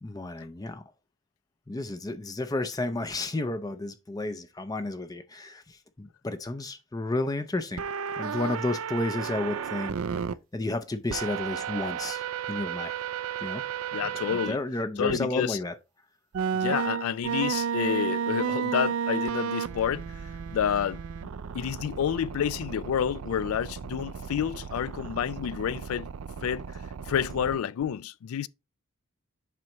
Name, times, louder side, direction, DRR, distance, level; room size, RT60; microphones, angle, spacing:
voice 1, 0.0-0.8 1.7-7.8 8.2-10.0 10.5-12.9 13.4-13.6 14.3-15.7, left 2 dB, 15° left, 0.4 m, -32 dB
sound 1, 7.8-10.3 11.1-14.5 15.1-15.2 16.3-27.6, right 7 dB, 80° right, 0.4 m, -33 dB
voice 2, 13.9-14.6 15.0-15.6 16.5-20.1 20.5-26.1 26.4-26.7 27.1-28.5, left 8 dB, 85° left, 0.3 m, -29 dB
7.5 x 5.3 x 3.0 m
head